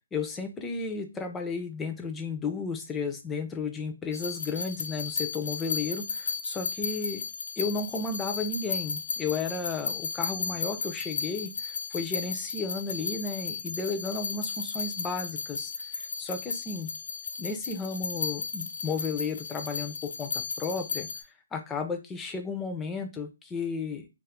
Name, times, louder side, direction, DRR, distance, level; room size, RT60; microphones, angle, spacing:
voice 1, 0.1-7.2 7.6-16.9 17.4-21.1 21.5-24.1, left 4 dB, 10° left, 5 dB, 0.4 m, -33 dB
sound 1, 4.1-21.2, left 5 dB, 60° left, 0.5 m, -34 dB
2.4 x 2.3 x 3.5 m, 0.26 s
hypercardioid pair, 165°, 0 cm